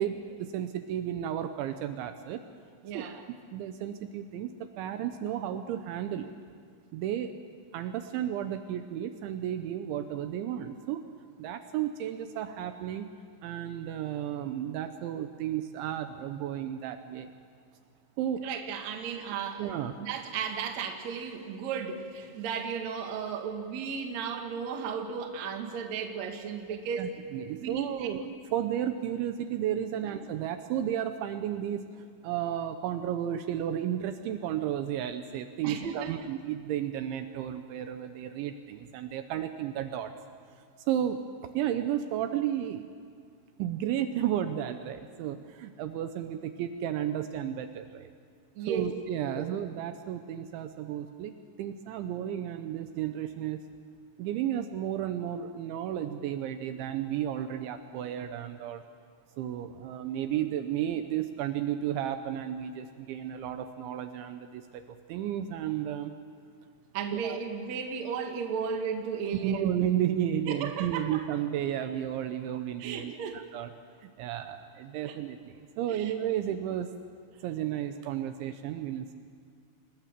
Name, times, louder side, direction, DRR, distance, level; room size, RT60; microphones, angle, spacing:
voice 1, 0.0-2.4 2.9-6.3 6.9-7.3 7.7-11.1 11.4-13.1 13.4-17.3 18.2-18.5 19.6-20.0 27.0-28.2 28.5-40.1 40.9-42.8 43.6-48.1 48.7-51.3 51.6-53.6 54.2-58.8 59.4-64.8 65.1-66.1 67.1-67.4 69.4-73.7 74.0-76.9 77.4-79.2, right 10 dB, 75° right, 8 dB, 3.0 m, -33 dB
voice 2, 2.8-3.2 18.4-19.7 20.0-27.1 27.6-28.2 30.0-30.1 35.6-36.3 48.6-48.9 49.3-49.5 66.9-69.7 70.5-71.2 72.8-73.4 75.0-75.1 75.9-76.1, right 6 dB, 55° right, 4 dB, 2.1 m, -35 dB
27.0 x 21.0 x 7.4 m, 2.1 s
omnidirectional pair, 5.8 m